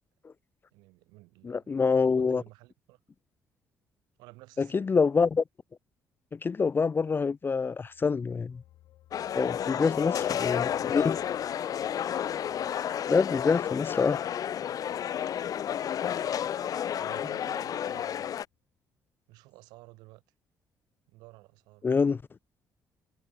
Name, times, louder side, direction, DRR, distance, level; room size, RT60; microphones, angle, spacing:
voice 1, 0.7-3.0 4.2-5.0 9.7-11.3 16.0-16.5 17.0-18.4 19.3-20.2 21.1-21.9, right 22 dB, 85° right, 7.1 m, -53 dB
voice 2, 1.4-2.4 4.6-5.4 6.3-8.6 9.3-10.1 10.4-11.2 13.1-14.2 21.8-22.2, left 5 dB, 30° left, 0.4 m, -26 dB
sound 1, 7.4-18.1 18.5-18.6, left 15 dB, 80° left, 5.6 m, -63 dB
sound 2, 9.1-18.4, left 9 dB, 60° left, 0.8 m, -31 dB
supercardioid pair, 60°, 7 cm